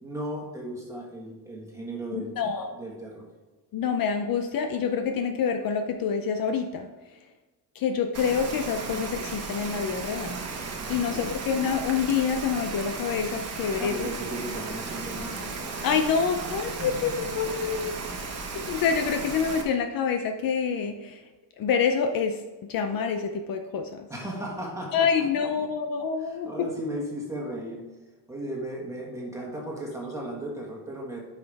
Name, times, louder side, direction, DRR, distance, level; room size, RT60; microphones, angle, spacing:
voice 1, 0.0-2.3 2.8-3.3 10.8-11.3 13.8-15.5 16.8-17.3 24.1-25.1 26.2-27.8 28.3-31.2, right 1 dB, 5° right, -2 dB, 1.6 m, -36 dB
voice 2, 2.1-2.7 3.7-6.9 7.7-10.4 10.9-14.1 15.8-18.0 18.6-21.2 21.6-22.4 22.7-24.1 24.9-26.5, left 6 dB, 55° left, 6 dB, 0.6 m, -27 dB
Rain, 8.1-19.6, right 4 dB, 35° right, 1.2 m, -35 dB
9.1 x 5.7 x 3.4 m, 1.2 s
cardioid pair, 170°, 42 cm